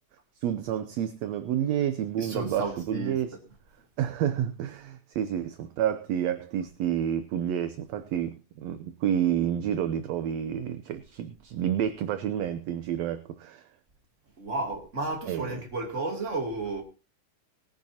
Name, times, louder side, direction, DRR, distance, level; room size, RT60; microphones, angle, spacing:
voice 1, 0.4-3.4 4.0-13.7 15.3-15.6, right 10 dB, 70° right, 1.8 m, -29 dB
voice 2, 2.2-3.2 14.4-16.8, right 2 dB, 25° right, 2.8 m, -32 dB
20.5 x 10.5 x 2.8 m
omnidirectional pair, 3.6 m